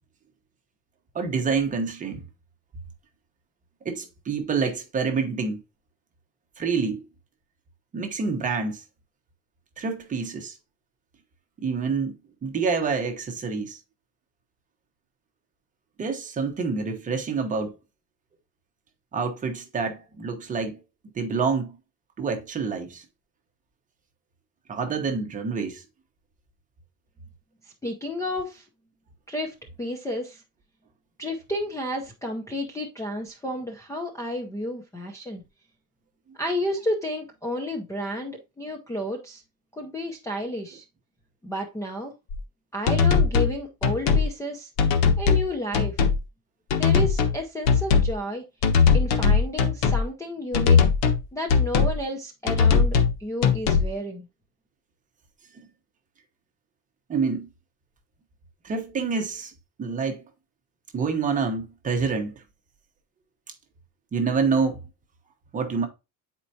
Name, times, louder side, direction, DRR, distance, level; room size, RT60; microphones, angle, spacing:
voice 1, 1.1-2.2 3.8-5.6 6.6-7.0 7.9-8.8 9.8-10.6 11.6-12.1 12.4-13.8 16.0-17.7 19.1-20.8 21.1-21.7 22.2-23.0 24.7-25.8 55.5-55.7 57.1-57.5 58.6-59.5 59.8-60.2 60.9-62.3 64.1-64.8 65.5-65.9, right 5 dB, 20° right, 1.0 m, -27 dB
voice 2, 27.8-28.6 29.3-30.4 31.2-35.4 36.4-39.4 39.7-40.8 41.4-42.1 42.7-44.7 45.2-46.0 46.8-48.4 48.9-50.8 51.3-54.3, left 1 dB, 10° left, 0.7 m, -31 dB
sound 1, 42.3-42.4 42.9-43.6 43.8-44.3 44.8-45.5 45.7-46.2 46.7-47.4 47.7-48.1 48.6-50.0 50.5-51.2 51.5-52.0 52.5-53.1 53.4-53.9, left 5 dB, 80° left, 1.2 m, -20 dB
8.8 x 4.5 x 2.7 m
cardioid pair, 180°, 37 cm